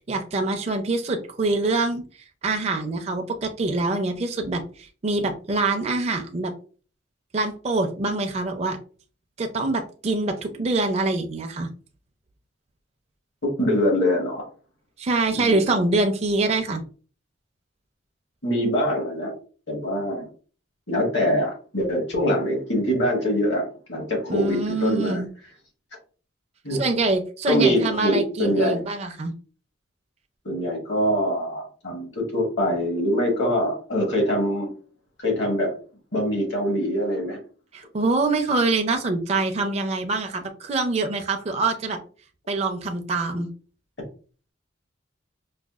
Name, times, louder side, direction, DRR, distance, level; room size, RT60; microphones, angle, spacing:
voice 1, 0.0-2.0 2.4-6.5 7.3-8.8 9.4-11.7 15.0-16.8 24.3-25.3 26.8-29.3 37.7-42.0 42.5-43.5, right 3 dB, 35° right, 4 dB, 0.4 m, -25 dB
voice 2, 13.4-14.5 15.3-15.7 18.4-19.3 19.7-20.3 20.9-25.2 26.6-26.8 27.5-28.8 30.4-34.7 35.2-35.7 36.1-37.4, equal, 65° left, 0 dB, 1.3 m, -24 dB
4.8 x 2.2 x 2.3 m, 0.39 s
head